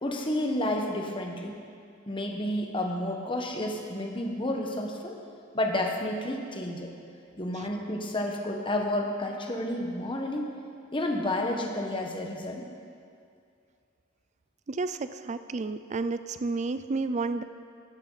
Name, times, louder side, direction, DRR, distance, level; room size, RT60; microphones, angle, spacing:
voice 1, 0.0-1.5 2.1-5.2 5.5-6.9 7.4-10.5 10.9-12.6, left 1 dB, 25° left, 2 dB, 1.3 m, -30 dB
voice 2, 14.7-17.4, right 3 dB, 35° right, 11 dB, 0.5 m, -31 dB
15.5 x 11.0 x 4.1 m, 2.4 s
head